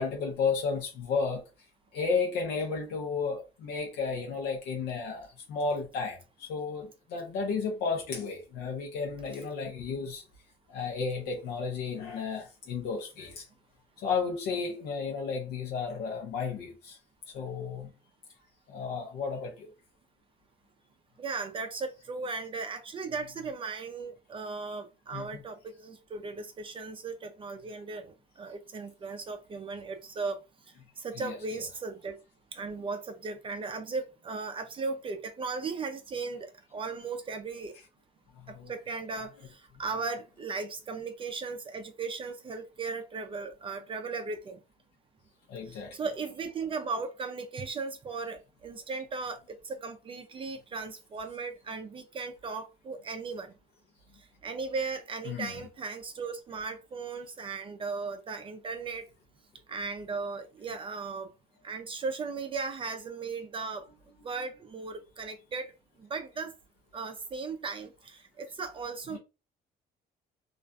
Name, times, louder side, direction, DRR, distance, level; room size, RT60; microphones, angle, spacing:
voice 1, 0.0-1.4 1.9-6.2 6.5-10.2 10.7-13.4 14.0-17.0 17.3-17.9 18.7-19.5 25.1-25.4 31.2-31.4 38.6-38.7 45.5-45.9 55.3-55.6 69.1-69.2, left 5 dB, 85° left, 0.6 m, -33 dB
voice 2, 21.2-30.4 31.0-32.2 32.5-37.8 38.5-44.6 45.7-53.5 54.2-59.1 59.7-61.3 61.6-63.9 64.2-65.7 66.0-66.5 66.9-69.2, right 4 dB, 30° right, 0.4 m, -37 dB
2.4 x 2.2 x 2.4 m
cardioid pair, 110°, 17 cm